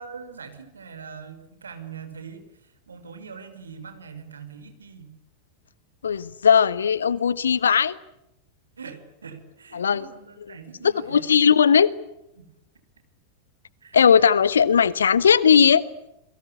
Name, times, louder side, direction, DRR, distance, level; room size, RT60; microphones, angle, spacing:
voice 1, 0.0-5.2 8.8-11.3 12.4-12.5 13.8-14.0, right 6 dB, 75° right, 5.3 m, -42 dB
voice 2, 6.0-8.0 9.7-10.0 10.8-11.9 13.9-15.8, left 7 dB, 70° left, 1.3 m, -18 dB
29.0 x 23.0 x 8.2 m
figure-of-eight pair, 90°, 0 cm